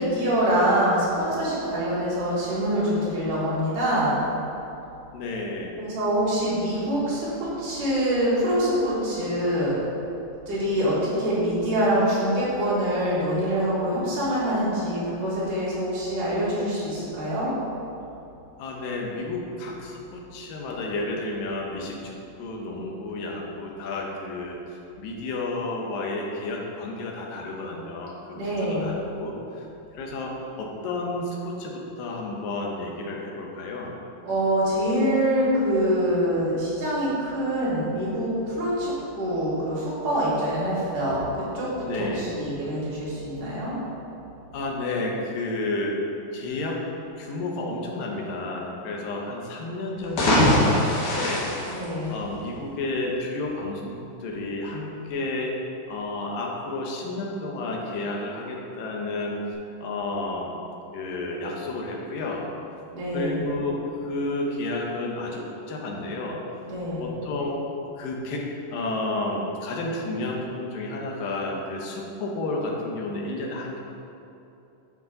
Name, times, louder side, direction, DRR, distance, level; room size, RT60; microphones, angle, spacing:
voice 1, 0.0-4.2 5.8-9.8 10.5-17.5 28.3-28.9 34.2-43.8 51.7-52.2 62.9-63.4 66.6-67.1, equal, 70° right, -9 dB, 3.7 m, -25 dB
voice 2, 5.1-5.7 18.6-29.7 29.9-33.9 41.8-42.3 44.5-46.0 46.3-46.8 47.2-51.5 52.1-55.5 55.9-59.4 59.8-60.5 60.9-62.5 63.1-66.4 67.0-67.6 68.0-73.8, left 2 dB, 85° left, -1 dB, 2.7 m, -31 dB
sound 1, 50.0-52.6, left 1 dB, 65° left, 2.9 m, -22 dB
10.0 x 5.9 x 3.9 m, 2.8 s
omnidirectional pair, 3.9 m